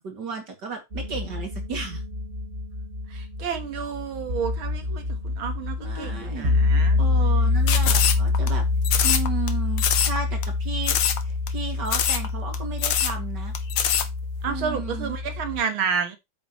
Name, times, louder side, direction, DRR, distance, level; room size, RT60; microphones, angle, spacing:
voice 1, 0.0-2.0 5.8-6.6 7.0-8.7 9.0-11.0 11.2-13.5 14.5-15.2, right 4 dB, 55° right, 3.1 m, -34 dB
sound 1, 0.9-15.6, left 3 dB, 35° right, 1.9 m, -26 dB
voice 2, 3.1-7.0 14.4-16.2, right 6 dB, 85° right, 2.4 m, -30 dB
sound 2, 7.7-8.5 8.8-9.5 9.8-10.2 10.4-10.5 10.8-11.2 11.5-11.6 11.9-12.3 12.5-12.6 12.8-13.1 13.5-14.1, left 9 dB, 85° left, 1.9 m, -23 dB
8.8 x 7.7 x 3.1 m
omnidirectional pair, 2.2 m